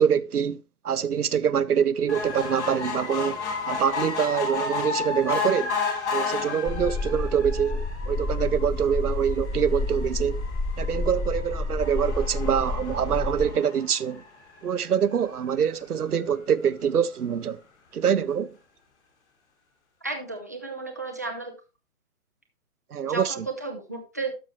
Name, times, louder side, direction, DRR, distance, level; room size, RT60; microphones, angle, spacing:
voice 1, 0.0-3.4 3.6-5.7 6.1-10.4 10.8-14.2 14.6-17.6 17.9-18.5 22.9-23.3, right 8 dB, 85° right, 0.7 m, -25 dB
sound 1, 2.1-14.7 15.3-15.4 15.6-15.7 16.0-16.1, left 5 dB, 50° left, 2.9 m, -33 dB
sound 2, 6.7-13.5, left 2 dB, 15° left, 1.8 m, -30 dB
voice 2, 20.0-21.5 23.0-24.3, right 3 dB, 15° right, 0.4 m, -33 dB
12.0 x 6.2 x 3.1 m
figure-of-eight pair, 140°, 44 cm